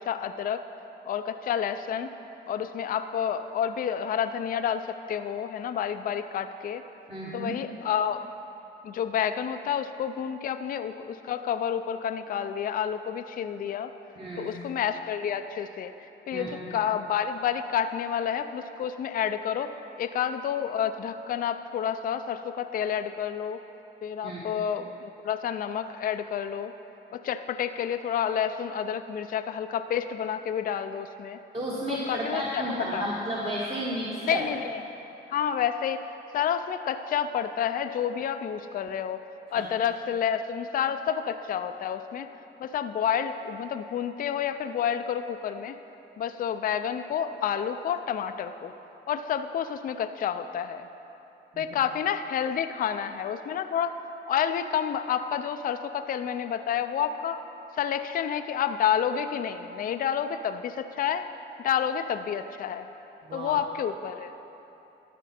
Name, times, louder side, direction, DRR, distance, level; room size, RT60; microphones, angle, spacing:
voice 1, 0.1-0.6 1.1-2.1 2.5-4.8 5.1-6.8 7.3-8.2 8.8-13.9 14.4-15.9 16.3-19.7 20.0-23.6 24.0-26.7 27.1-31.4 31.9-32.6 32.9-33.0 34.3-34.8 35.3-36.0 36.3-39.2 39.5-42.3 42.6-45.7 46.2-48.7 49.1-50.9 51.6-54.0 54.3-57.4 57.8-61.3 61.6-62.9 63.3-64.3, left 8 dB, 45° left, 9 dB, 0.4 m, -29 dB
voice 2, 7.1-7.5 14.2-14.5 16.3-16.7 24.2-24.4 31.5-34.4 39.5-39.7 51.5-51.7 63.3-63.5, equal, 30° right, -6 dB, 1.2 m, -32 dB
13.0 x 5.0 x 4.3 m, 3.0 s
cardioid pair, 90°, 20 cm